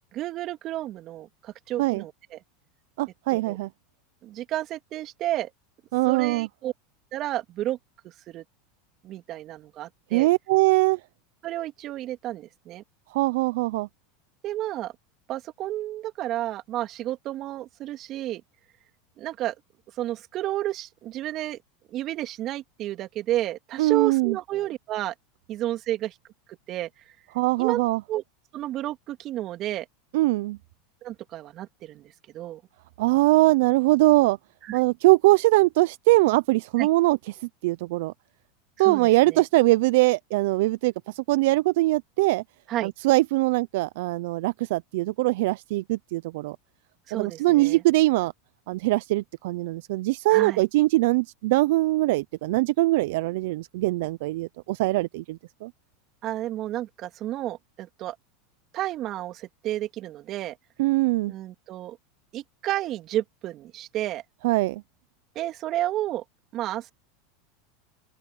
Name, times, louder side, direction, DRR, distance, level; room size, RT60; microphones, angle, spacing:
voice 1, 0.1-2.4 3.3-3.6 4.2-5.5 6.1-6.7 7.1-7.8 8.0-8.4 9.0-10.3 11.4-12.8 14.4-14.9 15.3-18.4 19.2-19.5 20.0-21.6 21.9-25.1 25.5-26.1 26.5-26.9 27.6-27.8 28.1-28.2 28.5-29.9 31.0-32.6 34.6-34.8 36.8-36.9 38.8-39.4 42.7-42.9 47.1-47.8 50.3-50.6 56.2-58.1 58.7-60.6 61.3-62.0 62.3-64.2 65.3-66.2 66.5-66.9, right 14 dB, 45° right, 3.2 m, -31 dB
voice 2, 3.0-3.7 5.9-6.5 10.1-11.0 13.1-13.9 23.8-24.4 27.3-28.0 30.1-30.6 33.0-34.4 34.7-37.4 37.6-38.1 38.8-42.4 42.8-46.6 47.1-48.3 48.7-55.7 60.8-61.3 64.4-64.8, right 20 dB, 70° right, 0.6 m, -22 dB
open air
hypercardioid pair, 100°, 0 cm